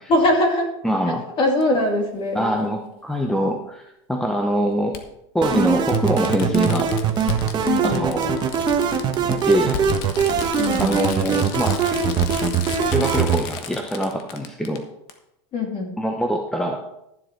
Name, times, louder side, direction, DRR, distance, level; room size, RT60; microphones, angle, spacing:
voice 1, 0.1-0.7 1.4-2.8 7.6-8.1 10.6-11.0 15.5-15.9, left 1 dB, 35° left, 2 dB, 2.5 m, -22 dB
voice 2, 0.8-1.2 2.3-3.8 4.1-5.0 5.3-6.9 7.8-8.3 9.3-9.8 10.8-11.8 12.9-14.8 16.0-16.8, equal, 5° left, 3 dB, 0.8 m, -23 dB
Fireworks, 1.6-1.7 3.2-3.3 4.9-5.0 5.5-5.6 5.9-14.8 15.1-15.2, left 7 dB, 55° left, 1.3 m, -33 dB
sound 1, 5.4-13.4, right 7 dB, 30° right, 1.1 m, -22 dB
12.0 x 7.7 x 4.6 m, 0.85 s
supercardioid pair, 140°, 15 cm